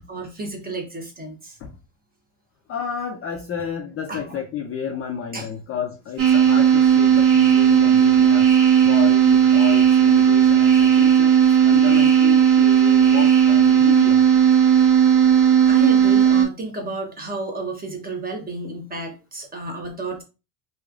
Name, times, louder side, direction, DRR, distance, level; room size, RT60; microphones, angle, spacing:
voice 1, 0.0-1.6 4.1-4.4 5.3-5.5 15.7-20.2, right 2 dB, 20° right, 0.8 m, -32 dB
voice 2, 2.7-8.5 8.8-11.3 11.6-14.3, left 7 dB, 30° left, 0.4 m, -31 dB
sound 1, 6.2-16.4, right 8 dB, 35° right, 1.3 m, -15 dB
3.1 x 2.3 x 2.4 m
supercardioid pair, 105°, 50 cm